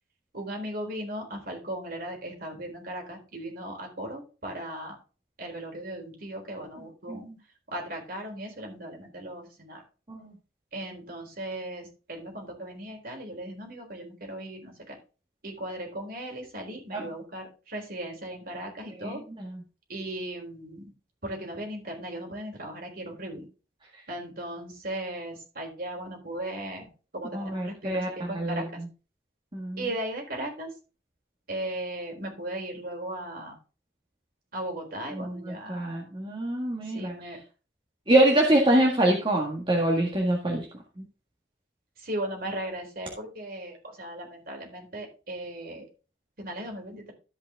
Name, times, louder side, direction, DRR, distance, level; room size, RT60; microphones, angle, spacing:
voice 1, 0.3-5.0 5.4-7.3 7.7-9.8 10.7-15.0 15.4-19.2 19.9-20.9 21.2-23.4 24.1-26.9 27.1-28.8 29.8-30.7 31.5-33.5 34.5-36.0 36.9-37.4 42.0-45.9 46.4-47.1, right 1 dB, 55° right, 1 dB, 3.9 m, -37 dB
voice 2, 19.0-19.6 27.3-28.9 29.5-29.9 35.1-37.3 38.1-40.7 41.0-41.1, right 1 dB, 30° right, 0 dB, 1.7 m, -25 dB
13.5 x 5.5 x 3.6 m, 0.34 s
head